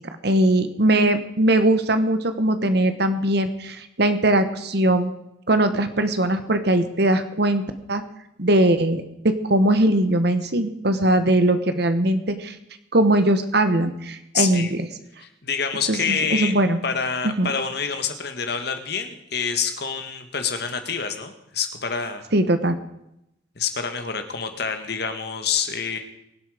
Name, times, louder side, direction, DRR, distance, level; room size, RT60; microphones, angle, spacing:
voice 1, 0.2-5.1 5.5-7.6 7.9-8.0 8.4-12.5 12.9-14.8 15.9-16.8 17.4-17.5 22.3-22.8, right 1 dB, 55° right, 9 dB, 1.2 m, -20 dB
voice 2, 14.3-14.7 15.2-16.5 16.8-22.2 23.5-26.0, left 6 dB, 55° left, 7 dB, 1.7 m, -27 dB
23.0 x 8.0 x 5.0 m, 0.81 s
head